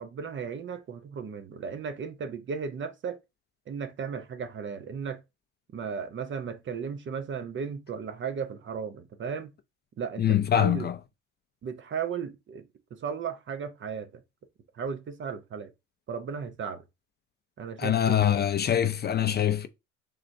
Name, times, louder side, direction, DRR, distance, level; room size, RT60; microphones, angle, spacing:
voice 1, 0.0-3.2 3.7-5.2 5.7-9.5 10.0-10.9 11.6-12.6 12.9-14.1 14.7-15.7 16.1-16.8 17.6-18.5, right 6 dB, 40° right, 0.7 m, -35 dB
voice 2, 10.2-11.0 17.8-19.7, left 10 dB, 35° left, 0.4 m, -24 dB
3.8 x 3.2 x 2.6 m
supercardioid pair, 90°, 31 cm